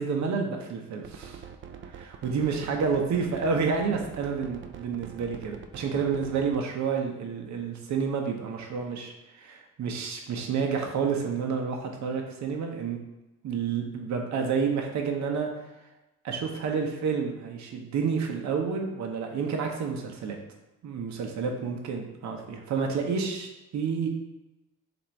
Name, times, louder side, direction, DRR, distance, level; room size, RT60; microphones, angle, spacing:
voice 1, 0.0-1.4 1.8-13.0 13.4-15.7 16.2-20.4 20.8-24.1, right 5 dB, 60° right, 2 dB, 0.8 m, -29 dB
sound 1, 1.0-6.6, right 7 dB, 40° right, 0.4 m, -44 dB
2.9 x 2.6 x 4.4 m, 1.0 s
supercardioid pair, 75°, 33 cm